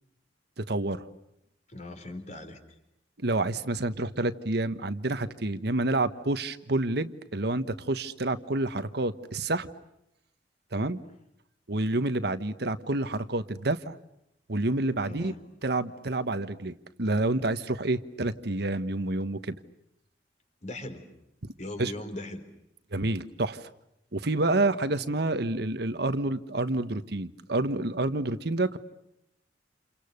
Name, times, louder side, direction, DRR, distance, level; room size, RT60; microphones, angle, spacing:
voice 1, 0.6-1.1 3.2-9.7 10.7-11.0 11.7-14.0 14.5-15.3 15.6-16.7 17.0-19.6 21.4-21.5 21.8-21.9 22.9-23.7 24.1-28.8, right 2 dB, 60° right, 11 dB, 1.3 m, -28 dB
voice 2, 1.7-2.6 15.0-15.4 20.6-21.0 21.6-22.4, left 1 dB, 40° left, 7 dB, 4.2 m, -39 dB
29.5 x 29.5 x 6.7 m, 0.81 s
head